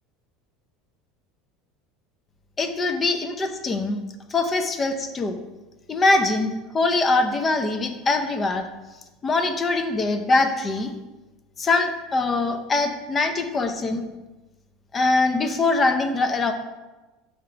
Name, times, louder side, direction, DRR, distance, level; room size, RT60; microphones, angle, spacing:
voice 1, 2.6-4.0 4.3-5.4 5.9-8.7 9.2-10.9 11.6-14.0 14.9-16.5, left 3 dB, 20° left, 6 dB, 0.5 m, -23 dB
5.7 x 3.8 x 4.4 m, 1.1 s
supercardioid pair, 145°, 0 cm